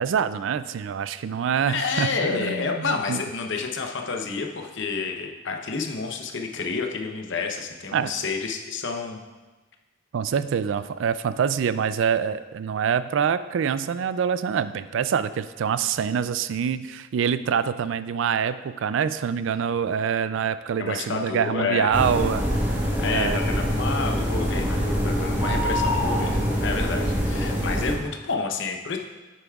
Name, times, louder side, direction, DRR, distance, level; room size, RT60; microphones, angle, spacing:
voice 1, 0.0-3.2 7.9-8.1 10.1-22.8 23.1-23.4, right 7 dB, 70° right, 14 dB, 0.3 m, -25 dB
voice 2, 1.7-9.2 20.8-21.9 23.0-29.0, left 4 dB, 65° left, 3 dB, 0.8 m, -29 dB
sound 1, 21.9-27.9, equal, 10° right, 1.4 m, -24 dB
9.1 x 8.1 x 2.4 m, 1.2 s
head